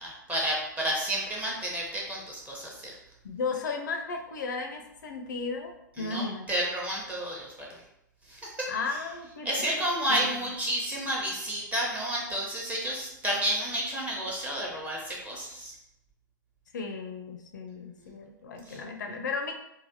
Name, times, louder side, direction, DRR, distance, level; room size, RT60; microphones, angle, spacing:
voice 1, 0.0-2.9 6.0-7.7 8.3-8.7 9.4-15.7 18.7-18.8, right 1 dB, 15° right, -3 dB, 0.8 m, -31 dB
voice 2, 3.2-6.5 8.7-9.8 10.1-10.3 16.7-19.5, left 4 dB, 65° left, 4 dB, 0.4 m, -35 dB
3.3 x 2.1 x 2.7 m, 0.82 s
figure-of-eight pair, 105°, 11 cm